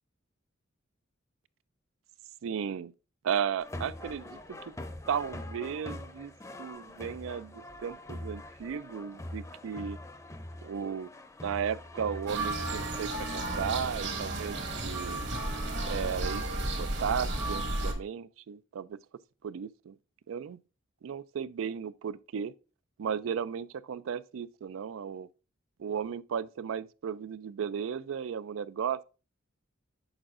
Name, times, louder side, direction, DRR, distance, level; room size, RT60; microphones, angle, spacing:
voice 1, 2.4-2.9 3.2-4.7 5.1-6.3 6.6-10.0 10.6-11.1 11.4-14.6 14.8-15.2 15.9-16.4 16.8-19.0 19.4-20.0 20.3-20.6 21.0-22.5 23.0-25.3 25.8-29.0, right 7 dB, 80° right, 0.4 m, -35 dB
sound 1, 3.6-16.2, left 1 dB, 15° left, 0.6 m, -44 dB
sound 2, 12.3-17.9, right 2 dB, 60° right, 1.5 m, -33 dB
8.8 x 6.2 x 2.5 m
head